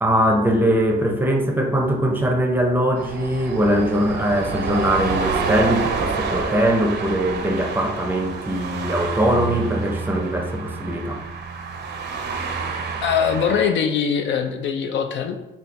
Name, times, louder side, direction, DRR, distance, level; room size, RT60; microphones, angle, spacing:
voice 1, 0.0-11.2, right 1 dB, 10° right, 2 dB, 0.5 m, -21 dB
sound 1, 3.0-13.7, right 4 dB, 60° right, 0.6 m, -28 dB
voice 2, 12.7-15.4, left 7 dB, 65° left, 6 dB, 0.4 m, -22 dB
4.1 x 2.3 x 3.2 m, 0.95 s
cardioid pair, 90°, 20 cm